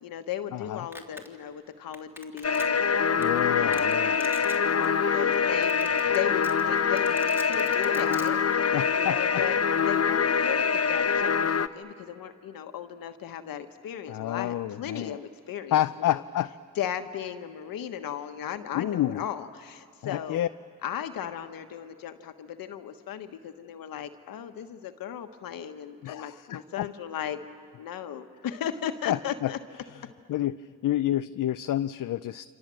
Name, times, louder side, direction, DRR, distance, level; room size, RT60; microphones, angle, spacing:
voice 1, 0.0-7.2 7.5-8.4 8.9-15.2 15.5-16.2 16.8-20.4 20.8-27.4 27.8-29.6, left 10 dB, 85° left, 8 dB, 1.4 m, -36 dB
voice 2, 0.5-0.9 3.2-4.2 8.7-9.2 14.1-15.2 15.7-16.5 18.7-19.2 20.0-20.5 26.0-26.9 29.1-29.5 30.3-32.5, left 12 dB, 65° left, 11 dB, 0.6 m, -29 dB
Domestic sounds home sounds, 0.9-1.3 1.9-2.9 3.2-3.3 3.7-3.9 4.2-4.6 4.8-4.9 5.3-5.4 5.6-6.2 6.4-8.3, left 1 dB, 5° right, 3.0 m, -43 dB
sound 1, 2.4-11.7, left 6 dB, 45° left, 0.9 m, -24 dB
27.5 x 27.0 x 7.7 m, 2.3 s
cardioid pair, 65°, 34 cm